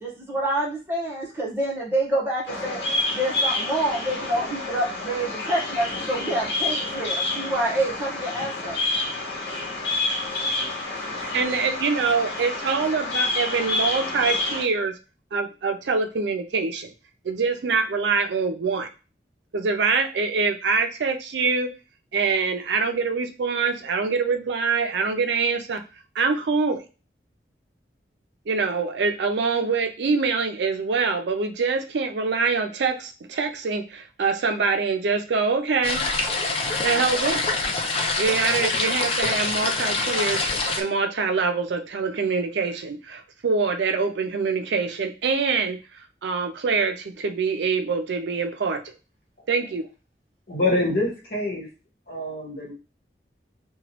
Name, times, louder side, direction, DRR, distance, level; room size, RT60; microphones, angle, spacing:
voice 1, 0.0-2.8 3.1-8.8 9.5-9.6 9.9-10.0 10.3-10.6 10.9-11.3, right 1 dB, 10° right, -4 dB, 0.9 m, -27 dB
Bird vocalization bird call bird song, 2.5-14.6, left 2 dB, 85° left, 0.9 m, -28 dB
voice 2, 11.0-14.9 15.3-16.9 17.2-18.9 19.5-21.7 22.1-25.8 26.2-26.8 28.5-36.1 36.8-37.4 38.2-45.8 46.2-48.9 49.5-49.8, right 4 dB, 80° right, 7 dB, 0.4 m, -24 dB
sound 1, 35.8-40.8, left 3 dB, 35° left, 0.4 m, -25 dB
voice 3, 50.5-51.7 52.1-52.7, left 2 dB, 55° left, -2 dB, 1.1 m, -25 dB
2.9 x 2.2 x 2.8 m, 0.32 s
head